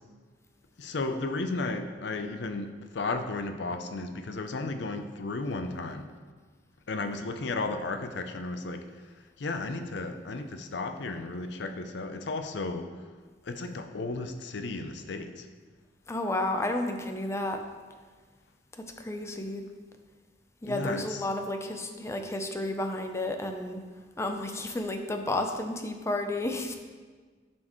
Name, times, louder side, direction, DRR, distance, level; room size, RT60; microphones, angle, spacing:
voice 1, 0.8-6.1 6.9-9.1 9.4-12.9 13.4-15.5 20.7-21.2, left 3 dB, 65° left, 7 dB, 0.5 m, -34 dB
voice 2, 16.1-17.6 19.0-19.6 20.6-23.8 24.2-26.8, left 1 dB, 15° left, 5 dB, 0.5 m, -31 dB
11.0 x 4.4 x 3.1 m, 1.5 s
head